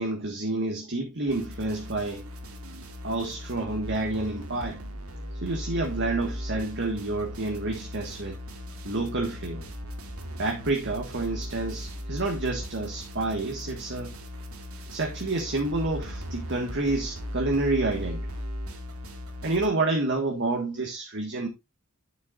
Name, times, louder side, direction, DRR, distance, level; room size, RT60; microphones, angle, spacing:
voice 1, 0.0-2.2 3.0-4.8 5.4-8.4 8.8-9.7 10.4-14.1 14.9-18.3 19.4-21.5, right 2 dB, 55° right, 1.6 m, -29 dB
sound 1, 1.3-19.7, equal, 75° right, 2.1 m, -38 dB
9.8 x 8.0 x 2.5 m
head